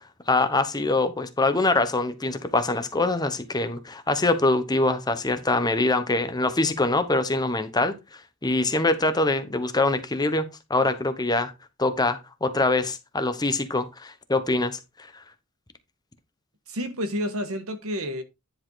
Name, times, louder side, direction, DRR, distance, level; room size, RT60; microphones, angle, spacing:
voice 1, 0.3-7.9 8.4-11.5 11.8-14.8 15.1-15.2, left 2 dB, 20° left, 1.0 m, -24 dB
voice 2, 16.7-18.2, equal, 80° right, 1.6 m, -30 dB
10.5 x 4.2 x 3.9 m
head